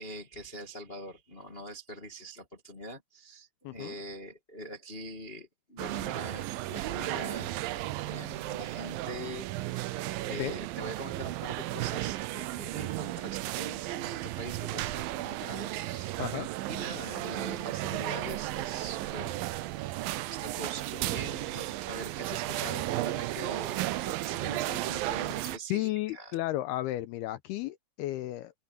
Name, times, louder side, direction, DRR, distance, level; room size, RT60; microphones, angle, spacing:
voice 1, 0.0-7.5 8.0-9.5 10.2-19.4 20.3-26.3, right 1 dB, 35° left, 0.9 m, -43 dB
sound 1, 5.8-25.6, right 16 dB, 85° right, 2.0 m, -34 dB
voice 2, 25.7-28.5, left 15 dB, 85° left, 2.4 m, -33 dB
omnidirectional pair, 5.1 m